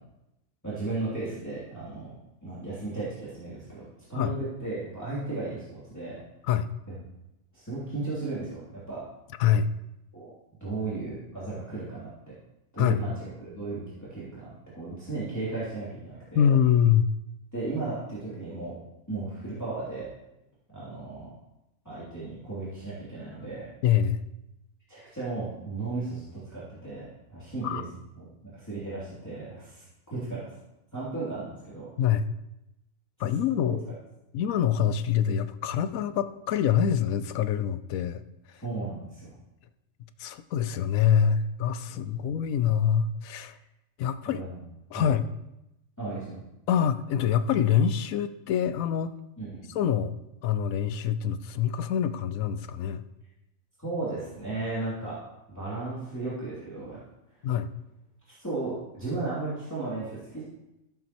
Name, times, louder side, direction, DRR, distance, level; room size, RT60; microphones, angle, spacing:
voice 1, 0.6-2.1 2.4-3.8 4.1-6.2 7.5-9.0 10.1-10.3 10.6-12.3 12.7-13.1 13.4-13.8 14.1-16.5 17.5-18.8 19.1-20.1 20.7-21.3 21.8-23.7 24.9-27.8 28.2-29.8 30.1-30.5 30.9-31.9 38.6-39.4 41.9-42.3 44.3-44.6 44.9-45.1 46.0-46.4 49.4-49.8 53.8-55.2 55.5-57.0 58.3-60.4, right 3 dB, 10° left, -11 dB, 2.9 m, -35 dB
voice 2, 16.3-17.1 23.8-24.3 27.6-27.8 32.0-32.3 33.2-33.8 34.3-38.2 40.2-43.6 44.0-44.4 44.9-45.3 46.7-49.1 49.7-50.1 50.4-53.0 57.4-57.7, left 8 dB, 80° left, 12 dB, 1.0 m, -25 dB
14.5 x 7.1 x 3.0 m, 0.91 s
omnidirectional pair, 1.4 m